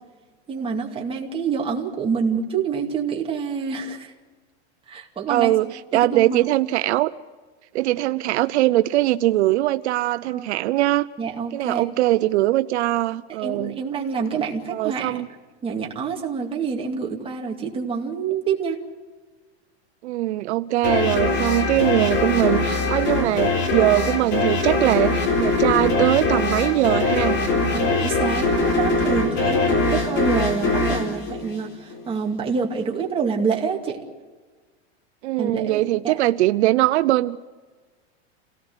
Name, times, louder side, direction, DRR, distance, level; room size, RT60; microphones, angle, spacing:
voice 1, 0.5-4.1 4.9-5.5 5.9-6.4 10.3-10.5 11.2-11.9 13.3-15.2 15.6-18.8 27.7-34.0 35.4-36.2, right 5 dB, 15° right, 1 dB, 2.4 m, -27 dB
voice 2, 5.3-7.1 7.7-11.1 11.5-13.8 14.7-15.3 20.0-27.4 35.2-37.5, right 16 dB, 75° right, 13 dB, 0.7 m, -21 dB
sound 1, 20.8-32.1, left 3 dB, 35° left, 4.0 m, -22 dB
28.0 x 18.0 x 8.0 m, 1.4 s
supercardioid pair, 155°, 34 cm